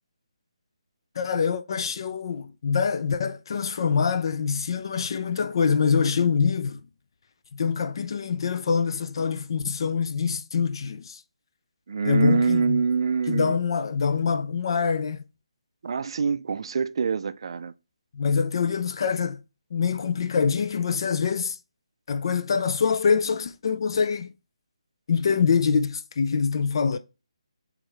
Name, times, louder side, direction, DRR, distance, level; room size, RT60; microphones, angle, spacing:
voice 1, 1.2-6.8 7.5-11.2 12.0-12.8 13.3-15.2 18.1-19.4 19.7-21.6 22.1-24.3 25.1-27.0, left 6 dB, 45° left, 0.3 m, -25 dB
voice 2, 11.9-13.6 15.8-17.7, right 5 dB, 55° right, 0.3 m, -25 dB
4.4 x 3.7 x 3.3 m
figure-of-eight pair, 155°, 3 cm